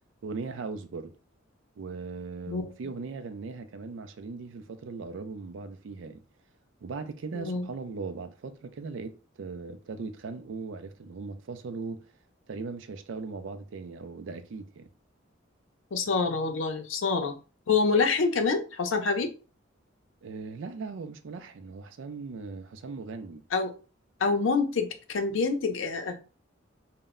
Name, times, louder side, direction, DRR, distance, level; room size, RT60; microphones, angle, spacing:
voice 1, 0.2-1.1 1.8-6.2 6.8-12.0 12.5-14.9 20.2-23.4, right 4 dB, 70° right, 0.4 m, -39 dB
voice 2, 7.3-7.7 15.9-17.3 17.7-19.3 23.5-23.7 24.2-26.2, left 4 dB, 80° left, 0.5 m, -26 dB
2.1 x 2.0 x 3.5 m
head